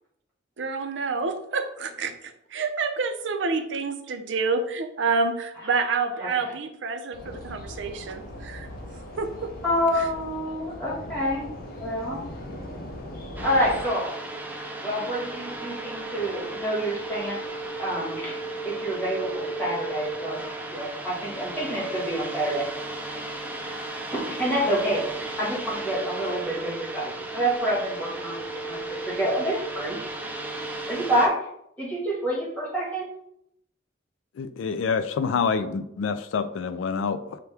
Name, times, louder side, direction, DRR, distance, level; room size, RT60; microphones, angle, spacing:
voice 1, 0.6-2.1 2.5-8.7 9.2-9.5, right 4 dB, 70° right, 7 dB, 0.5 m, -28 dB
sound 1, 7.1-13.9, left 1 dB, 50° left, 0.6 m, -39 dB
voice 2, 9.6-11.5 11.8-12.2 13.4-14.1 14.8-17.4 17.8-18.4 18.6-20.4 20.7-22.7 23.7-23.8 24.1-25.0 25.4-30.0 30.9-31.3 31.8-33.1, equal, 10° left, -7 dB, 1.5 m, -27 dB
sound 2, 13.4-31.3, right 2 dB, 10° right, 0.4 m, -34 dB
voice 3, 34.4-37.4, left 5 dB, 90° left, 11 dB, 0.3 m, -27 dB
5.7 x 2.2 x 3.3 m, 0.76 s
head